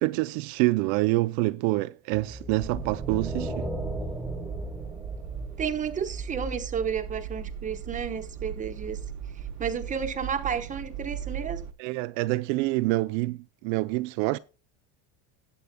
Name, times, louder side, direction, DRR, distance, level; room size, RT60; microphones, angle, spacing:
voice 1, 0.0-3.7 11.8-14.4, right 20 dB, 70° right, 0.5 m, -26 dB
sound 1, 2.3-6.5, right 1 dB, ahead, 1.4 m, -36 dB
sound 2, 2.5-11.7, right 7 dB, 55° right, 0.9 m, -38 dB
voice 2, 5.6-9.0 9.3-11.6, right 7 dB, 20° right, 1.0 m, -32 dB
18.5 x 8.0 x 2.2 m
cardioid pair, 150°, 40 cm